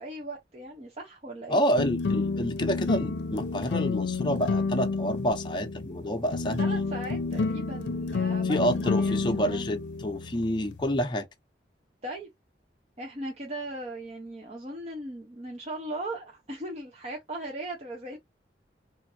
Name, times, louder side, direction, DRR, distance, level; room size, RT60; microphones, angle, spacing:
voice 1, 0.0-1.6 6.3-9.7 12.0-12.3 13.0-18.2, right 1 dB, 35° right, 0.7 m, -38 dB
voice 2, 1.5-6.6 8.4-11.2, equal, 25° left, 0.6 m, -28 dB
sound 1, 1.7-11.0, left 4 dB, 90° left, 0.5 m, -30 dB
3.6 x 2.5 x 2.7 m
head